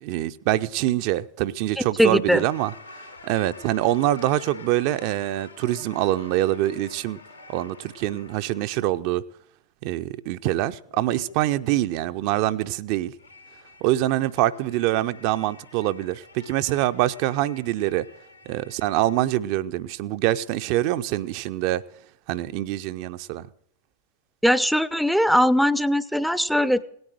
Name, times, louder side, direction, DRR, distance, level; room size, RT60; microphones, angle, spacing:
voice 1, 0.0-2.7 3.2-7.2 7.5-9.2 9.8-13.1 13.8-18.1 18.5-21.8 22.3-23.5, right 14 dB, 45° right, 0.5 m, -25 dB
voice 2, 1.8-2.4 24.4-26.8, equal, ahead, 0.5 m, -20 dB
sound 1, 2.3-9.0 10.9-12.1 13.2-19.3, left 3 dB, 90° left, 3.5 m, -47 dB
17.5 x 9.5 x 7.7 m
figure-of-eight pair, 90°, 0 cm